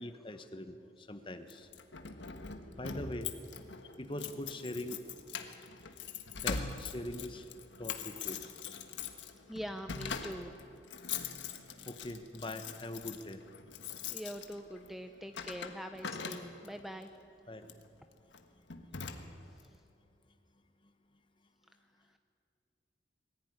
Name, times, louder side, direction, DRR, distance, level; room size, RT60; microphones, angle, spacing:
voice 1, 0.0-1.7 2.7-3.3 4.0-5.0 6.4-7.4 7.8-8.4 11.9-13.4 17.5-17.6, left 1 dB, 25° left, 8 dB, 1.1 m, -42 dB
Keys jangling, 1.5-16.8 17.6-17.9 18.3-18.4 18.7-19.6, left 6 dB, 75° left, 1.4 m, -43 dB
voice 2, 9.5-10.6 14.1-17.2 19.5-19.7, equal, ahead, 6 dB, 0.6 m, -44 dB
21.5 x 15.0 x 9.8 m, 2.6 s
head